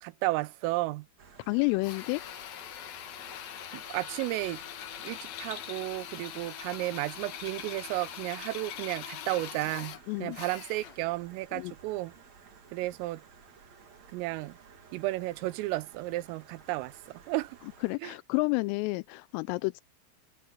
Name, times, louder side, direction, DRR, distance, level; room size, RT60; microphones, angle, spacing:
voice 1, 0.0-1.1 3.7-4.6 5.0-12.1 12.7-13.2 14.1-14.6 14.9-17.6 18.0-18.1, right 19 dB, 85° right, 3.4 m, -33 dB
Stream, 1.2-18.0, right 6 dB, 45° right, 2.8 m, -55 dB
voice 2, 1.5-2.2 10.1-10.4 11.5-11.7 17.8-19.8, left 26 dB, 90° left, 3.2 m, -30 dB
Drill, 1.8-11.1, left 10 dB, 65° left, 2.5 m, -42 dB
open air
omnidirectional pair, 5.8 m